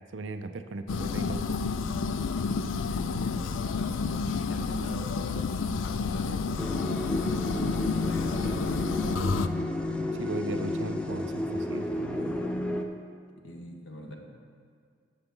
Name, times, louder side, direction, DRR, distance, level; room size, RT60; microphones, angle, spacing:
voice 1, 0.1-1.8 8.4-8.6 10.1-12.3, right 2 dB, 75° right, 9 dB, 0.6 m, -37 dB
sound 1, 0.9-9.5, left 4 dB, 85° left, 0.4 m, -30 dB
voice 2, 2.3-6.8 8.0-9.3 13.4-14.2, left 1 dB, 70° left, 1 dB, 1.4 m, -43 dB
sound 2, 6.6-12.8, left 1 dB, 5° left, 0.5 m, -31 dB
15.0 x 7.0 x 3.8 m, 2.1 s
head